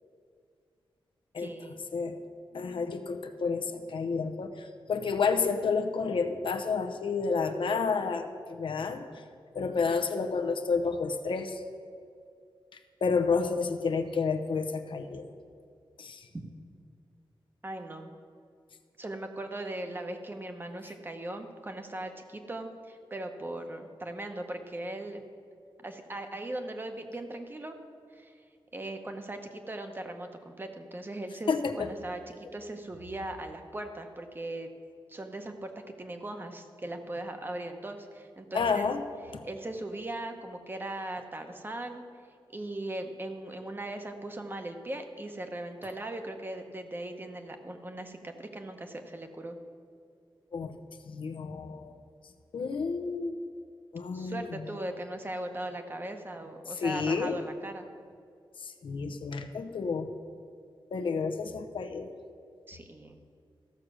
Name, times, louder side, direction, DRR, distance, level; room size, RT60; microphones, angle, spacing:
voice 1, 1.4-1.8 16.3-16.4 17.6-18.1 19.0-25.2 25.8-27.8 28.1-28.4 28.7-32.2 32.5-34.7 35.1-35.7 36.0-38.9 39.4-42.0 42.5-49.6 54.1-57.9 62.7-63.2, right 1 dB, 25° right, 5 dB, 1.0 m, -39 dB
voice 2, 2.5-9.0 9.5-11.6 12.7-15.3 16.0-16.3 31.5-31.9 38.5-39.0 39.3-39.4 50.5-50.8 51.0-51.9 52.5-53.4 53.9-54.6 56.7-57.4 58.6-60.1 60.9-62.1, left 5 dB, 70° left, 7 dB, 0.8 m, -30 dB
14.0 x 6.6 x 6.2 m, 2.2 s
wide cardioid pair, 135°, 9 cm